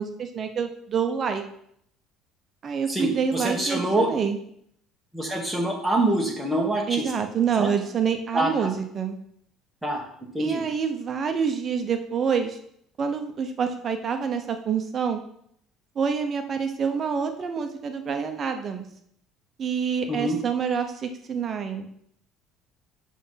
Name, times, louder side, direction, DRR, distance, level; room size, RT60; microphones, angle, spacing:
voice 1, 0.0-1.4 2.6-4.4 6.9-9.2 10.4-12.6 13.0-15.2 15.9-18.9 19.6-21.9, right 6 dB, 30° right, 6 dB, 0.7 m, -27 dB
voice 2, 2.9-4.1 5.1-7.1 7.6-7.7 8.3-8.7 9.8-10.0 10.3-10.6 20.1-20.4, right 1 dB, ahead, -1 dB, 1.4 m, -25 dB
5.9 x 5.6 x 5.7 m, 0.69 s
cardioid pair, 170°, 0 cm